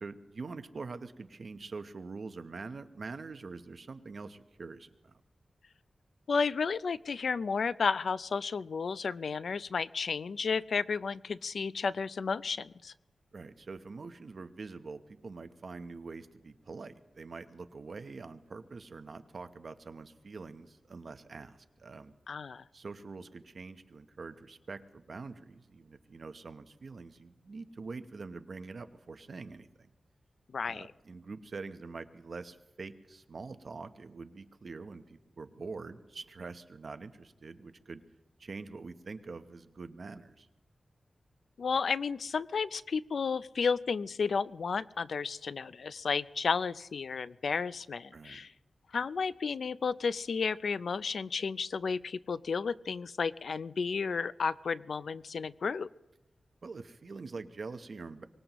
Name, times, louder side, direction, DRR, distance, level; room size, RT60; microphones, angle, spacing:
voice 1, 0.0-5.2 13.3-22.1 22.7-29.9 30.7-38.0 38.4-40.5 48.1-48.4 56.6-58.2, right 4 dB, 60° right, 9 dB, 0.8 m, -45 dB
voice 2, 6.3-12.9 22.3-22.6 30.5-30.9 41.6-48.5 48.9-55.9, left 5 dB, 75° left, 16 dB, 0.4 m, -32 dB
24.5 x 19.5 x 3.0 m, 1.1 s
wide cardioid pair, 100°, 0 cm